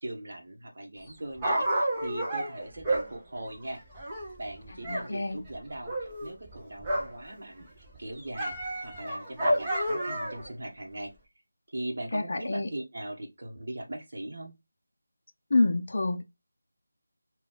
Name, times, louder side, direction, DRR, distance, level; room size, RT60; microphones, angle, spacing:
voice 1, 0.0-3.8 4.4-11.1 11.7-14.5, right 1 dB, 45° right, 1.0 m, -40 dB
Dog, 1.0-5.1 5.3-7.2 7.6-10.5 11.1-11.2, right 1 dB, 10° right, 0.6 m, -31 dB
voice 2, 4.8-5.4 12.1-12.7 15.5-16.2, left 2 dB, 45° left, 0.5 m, -27 dB
3.9 x 2.3 x 3.8 m
figure-of-eight pair, 175°, 0 cm